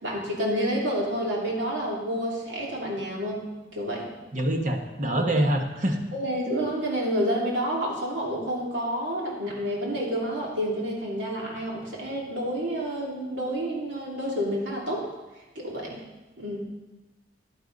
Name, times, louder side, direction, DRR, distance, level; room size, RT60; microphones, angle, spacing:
voice 1, 0.0-3.4 3.7-4.1 6.1-15.1 15.5-16.0 16.4-16.7, equal, 90° right, -3 dB, 2.9 m, -29 dB
voice 2, 4.3-6.0, right 1 dB, 45° right, 3 dB, 1.2 m, -25 dB
11.0 x 10.5 x 4.0 m, 1.1 s
head